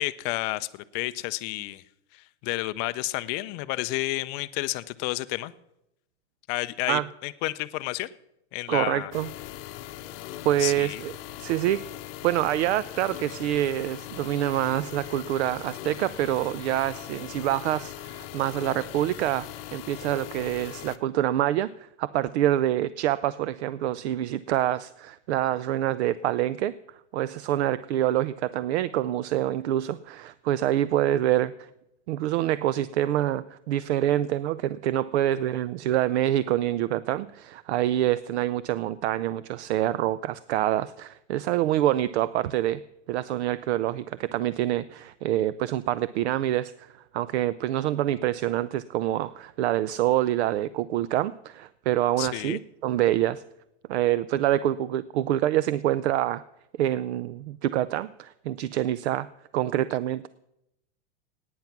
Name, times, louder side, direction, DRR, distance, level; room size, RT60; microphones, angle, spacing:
voice 1, 0.0-1.8 2.1-5.5 6.5-8.1 8.5-9.1 10.6-11.0 52.2-52.6, left 19 dB, 30° left, 14 dB, 0.4 m, -31 dB
voice 2, 8.7-9.3 10.4-11.1 11.4-11.8 12.2-26.7 27.1-31.7 32.1-42.8 43.1-53.4 53.9-56.4 56.8-59.3 59.5-60.3, right 13 dB, 65° right, 17 dB, 0.5 m, -26 dB
sound 1, 9.1-21.0, left 14 dB, 55° left, 0.8 m, -40 dB
16.5 x 9.4 x 5.8 m, 0.86 s
supercardioid pair, 140°, 35 cm